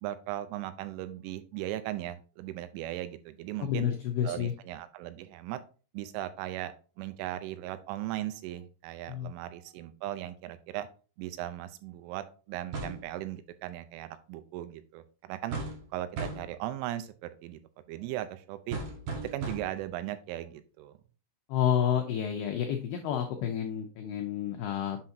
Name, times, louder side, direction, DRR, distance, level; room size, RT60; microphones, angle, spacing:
voice 1, 0.0-3.9 4.2-5.6 5.9-10.9 11.2-15.6 15.9-17.1 17.4-17.6 17.9-18.8 19.3-21.0, right 14 dB, 85° right, 11 dB, 3.2 m, -38 dB
voice 2, 3.6-4.5 9.1-9.3 21.5-25.0, left 9 dB, 85° left, 3 dB, 2.2 m, -30 dB
sound 1, 12.7-13.1 15.5-15.9 16.2-16.6 18.7-19.9, right 3 dB, 65° right, 2.6 m, -37 dB
7.3 x 5.8 x 2.7 m, 0.36 s
omnidirectional pair, 5.5 m